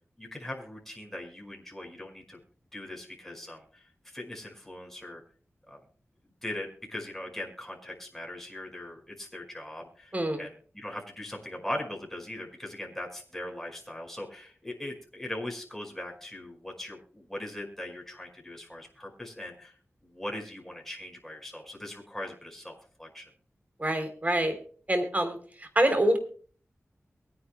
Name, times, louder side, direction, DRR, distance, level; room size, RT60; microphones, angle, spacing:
voice 1, 0.2-2.4 2.7-5.2 5.7-5.8 6.4-19.7 20.0-23.3, left 1 dB, 5° left, 1 dB, 5.2 m, -40 dB
voice 2, 23.8-24.5 24.9-26.2, right 1 dB, 30° right, 6 dB, 3.4 m, -26 dB
23.0 x 9.9 x 2.2 m, 0.43 s
wide cardioid pair, 60°, 5 cm